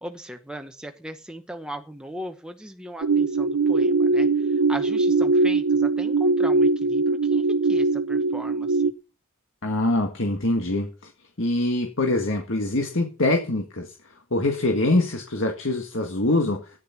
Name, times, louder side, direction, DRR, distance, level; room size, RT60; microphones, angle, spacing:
voice 1, 0.0-8.9, equal, 5° right, 5 dB, 0.9 m, -38 dB
sound 1, 3.0-8.9, right 3 dB, 85° right, 0.7 m, -21 dB
voice 2, 9.6-10.9 11.4-13.9 14.3-16.6, left 2 dB, 60° left, 3 dB, 1.8 m, -24 dB
14.5 x 9.9 x 5.9 m, 0.36 s
head